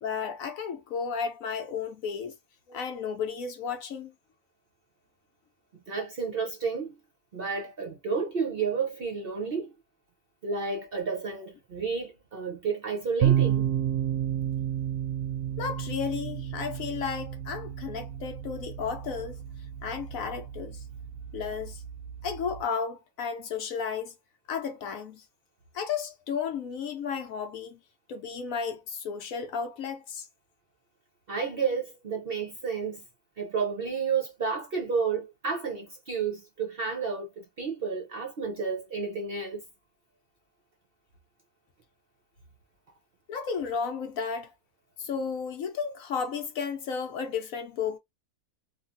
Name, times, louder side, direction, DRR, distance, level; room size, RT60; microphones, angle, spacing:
voice 1, 0.0-2.3 2.7-4.1 15.6-19.4 19.8-20.8 21.3-21.8 22.2-24.1 24.5-25.2 25.7-27.8 28.1-30.3 43.3-44.5 45.0-48.0, left 6 dB, 65° left, 1.0 m, -33 dB
voice 2, 5.9-7.0 7.3-9.7 10.4-13.7 31.3-33.0 33.4-39.6, right 5 dB, 50° right, 0.7 m, -31 dB
sound 1, 13.2-22.6, right 10 dB, 80° right, 1.2 m, -31 dB
3.1 x 2.4 x 2.5 m
omnidirectional pair, 1.7 m